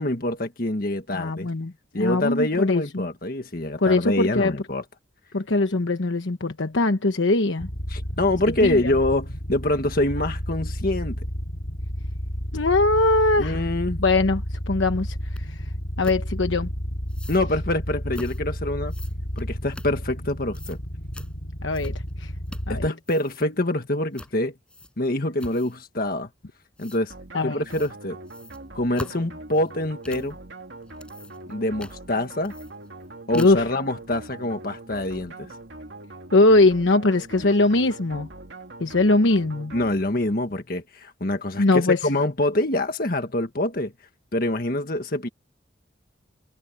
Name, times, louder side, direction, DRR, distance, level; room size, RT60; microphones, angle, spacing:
voice 1, 0.0-1.5 1.9-4.8 7.9-11.2 13.4-14.0 17.3-18.9 19.3-20.8 22.7-24.5 25.0-26.3 26.8-27.1 27.4-28.2 28.7-30.4 31.5-32.5 33.3-35.5 39.7-43.9 44.3-45.3, left 1 dB, 50° left, 1.7 m, -25 dB
voice 2, 1.1-3.1 3.8-4.5 5.3-7.7 8.6-8.8 12.5-13.6 14.0-15.6 16.0-16.7 21.6-22.3 22.7-22.8 27.3-27.6 33.3-33.6 36.3-38.3 38.8-39.7 41.6-42.0, left 2 dB, 85° left, 1.1 m, -21 dB
sound 1, 7.6-22.9, equal, 70° left, 6.0 m, -32 dB
sound 2, 15.4-15.5 16.0-16.2 17.1-17.5 18.1-18.4 18.9-20.3 20.5-20.8 21.1-21.3 21.7-22.1 22.5-22.8 23.0-23.5 24.1-24.4 24.7-25.1 25.4-25.8 26.8-27.0 27.7-27.9 28.3-30.3 30.8-31.5 31.8-32.0 32.4-33.1 33.3-33.7, left 1 dB, 5° left, 6.4 m, -42 dB
sound 3, 27.1-40.4, right 2 dB, 70° right, 2.6 m, -42 dB
head